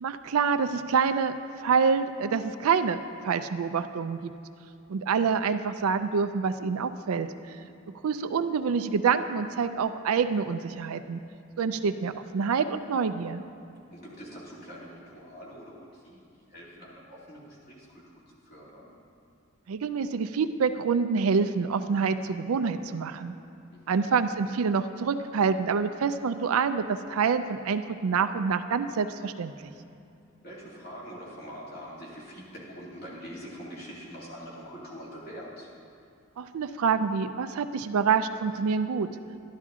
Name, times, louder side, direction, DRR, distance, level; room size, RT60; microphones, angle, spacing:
voice 1, 0.0-1.4 1.6-4.3 4.9-7.3 8.0-11.2 11.6-13.4 19.7-23.3 23.9-29.5 36.4-39.1, right 5 dB, 85° right, 10 dB, 0.4 m, -26 dB
voice 2, 11.6-12.0 13.9-18.9 23.7-24.1 30.4-35.7, equal, 45° left, -6 dB, 2.4 m, -44 dB
12.0 x 11.5 x 3.7 m, 2.5 s
head